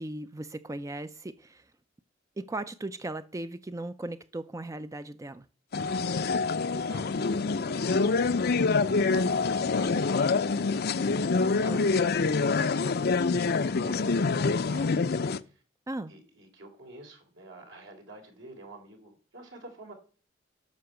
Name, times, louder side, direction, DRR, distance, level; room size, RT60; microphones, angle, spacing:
voice 1, 0.0-1.7 2.4-5.5 11.6-11.9 15.9-16.1, right 2 dB, 15° right, 0.5 m, -37 dB
sound 1, 5.7-15.4, left 4 dB, 55° left, 0.6 m, -26 dB
voice 2, 6.0-10.5 11.2-11.5 12.0-14.9 15.3-15.6 16.1-19.9, right 1 dB, 70° right, 3.9 m, -50 dB
12.5 x 6.2 x 8.0 m
head